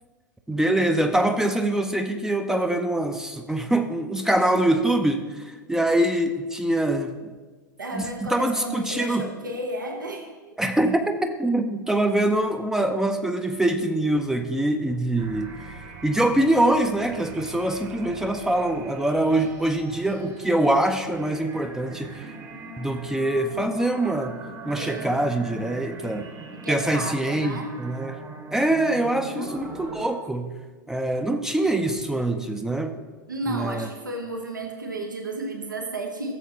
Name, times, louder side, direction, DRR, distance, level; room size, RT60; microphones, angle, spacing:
voice 1, 0.5-7.3 8.3-9.3 10.6-15.5 16.0-22.3 22.8-24.3 24.7-26.3 26.7-28.1 28.5-30.5 30.9-32.9 33.5-33.9, right 1 dB, 5° right, 6 dB, 0.5 m, -24 dB
voice 2, 7.8-10.6 24.7-25.1 26.5-27.8 29.2-29.8 33.3-36.3, right 2 dB, 80° right, 3 dB, 0.9 m, -33 dB
sound 1, 15.2-30.1, right 3 dB, 30° right, 1.2 m, -41 dB
14.0 x 7.2 x 2.8 m, 1.3 s
figure-of-eight pair, 85°, 10 cm